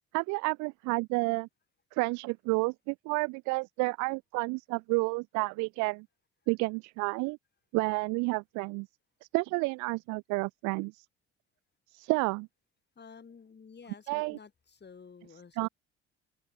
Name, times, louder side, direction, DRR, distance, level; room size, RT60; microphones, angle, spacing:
voice 1, 0.1-1.5 1.9-6.0 6.5-7.4 7.7-8.9 9.3-11.0 11.9-12.5 14.1-14.4 15.6-15.7, right 27 dB, 70° right, 1.4 m, -30 dB
voice 2, 13.0-15.7, left 5 dB, 35° left, 5.5 m, -52 dB
hypercardioid pair, 55°, 31 cm